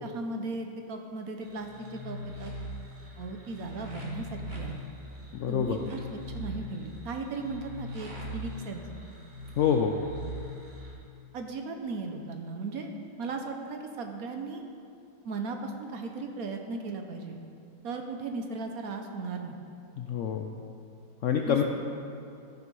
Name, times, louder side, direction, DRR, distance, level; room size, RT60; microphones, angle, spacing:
voice 1, 0.0-2.5 3.2-4.8 5.5-8.9 11.3-12.9 13.2-14.6 15.2-17.4 17.8-19.6 21.4-21.6, right 3 dB, 60° right, 4 dB, 1.1 m, -37 dB
sound 1, 1.4-10.9, left 1 dB, 30° right, 1.6 m, -41 dB
voice 2, 5.3-5.8 9.6-9.9 20.0-20.5 21.2-21.6, left 8 dB, 75° left, 3 dB, 0.7 m, -26 dB
14.0 x 6.1 x 5.4 m, 2.6 s
omnidirectional pair, 1.9 m